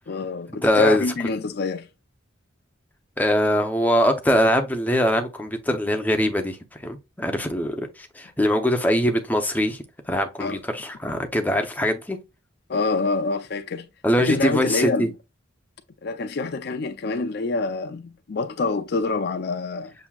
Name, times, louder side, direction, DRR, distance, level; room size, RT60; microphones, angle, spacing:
voice 1, 0.1-1.9 10.4-10.6 12.7-13.9 14.2-15.1 16.0-19.9, left 3 dB, 55° left, 0.5 m, -26 dB
voice 2, 0.6-1.1 3.2-6.6 6.8-12.2 14.0-15.1, equal, 10° left, 0.6 m, -22 dB
7.1 x 2.7 x 2.3 m
head